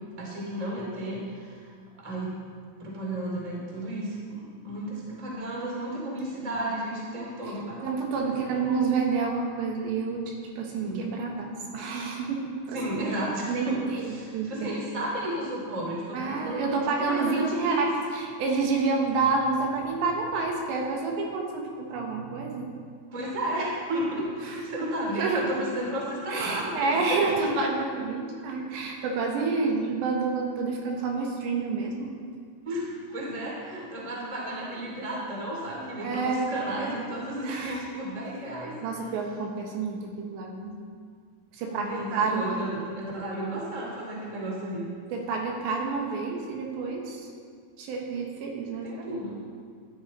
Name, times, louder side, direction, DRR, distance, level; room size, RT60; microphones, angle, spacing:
voice 1, 0.2-1.7 2.0-2.4 2.8-4.3 4.6-8.8 10.8-11.0 12.7-17.8 23.1-27.3 32.6-38.8 41.7-44.9 48.8-49.4, right 1 dB, 15° right, -3 dB, 1.5 m, -33 dB
voice 2, 7.8-12.8 13.5-15.0 16.1-17.8 18.1-22.7 24.4-24.6 25.0-25.6 26.3-32.1 36.0-36.5 37.4-37.8 38.8-40.8 41.5-42.6 45.1-47.3 47.8-49.3, right 4 dB, 75° right, 0 dB, 3.5 m, -29 dB
14.5 x 11.0 x 4.3 m, 2.1 s
omnidirectional pair, 5.3 m